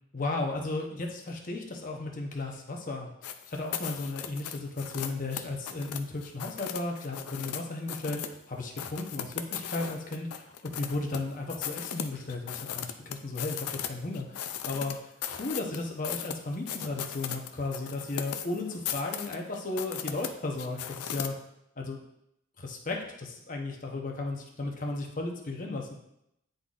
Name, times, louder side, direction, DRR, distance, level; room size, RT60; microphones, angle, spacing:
voice 1, 0.1-3.1 3.5-21.3 21.8-22.0 22.6-25.9, left 2 dB, 35° left, 1 dB, 0.8 m, -35 dB
sound 1, 3.2-7.6 7.9-8.4 8.8-11.2 11.5-13.9 14.1-21.3, left 9 dB, 85° left, 0.5 m, -37 dB
10.0 x 3.9 x 2.4 m, 0.80 s
head